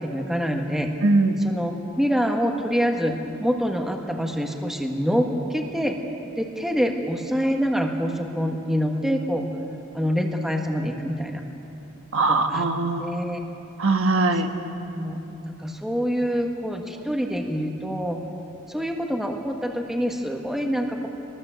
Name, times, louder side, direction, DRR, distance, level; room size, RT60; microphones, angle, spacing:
voice 1, 0.0-0.9 1.4-1.7 2.0-6.0 6.4-9.5 9.9-11.4 12.3-12.7 13.0-13.4 14.3-18.2 18.7-21.1, equal, ahead, 2 dB, 1.6 m, -26 dB
voice 2, 1.0-1.4 12.1-13.2 13.8-14.5, right 3 dB, 65° right, 5 dB, 1.3 m, -21 dB
22.0 x 20.0 x 7.8 m, 2.9 s
head